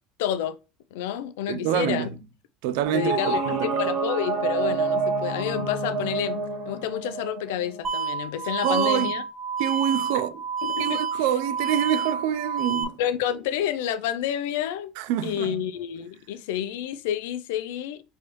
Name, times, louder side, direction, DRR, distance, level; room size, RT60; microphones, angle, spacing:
voice 1, 0.2-0.6 0.9-2.1 2.9-9.2 10.6-11.0 13.0-14.9 15.2-18.0, left 10 dB, 80° left, 0.5 m, -29 dB
voice 2, 1.5-2.1 2.6-3.8 8.6-9.1 9.6-10.4 10.8-13.0 15.0-15.6, right 10 dB, 75° right, 0.4 m, -26 dB
sound 1, 2.8-7.8, right 4 dB, 55° right, 1.3 m, -28 dB
sound 2, 7.8-12.8, right 6 dB, 35° right, 0.8 m, -29 dB
4.6 x 3.2 x 3.0 m
supercardioid pair, 95°, 0 cm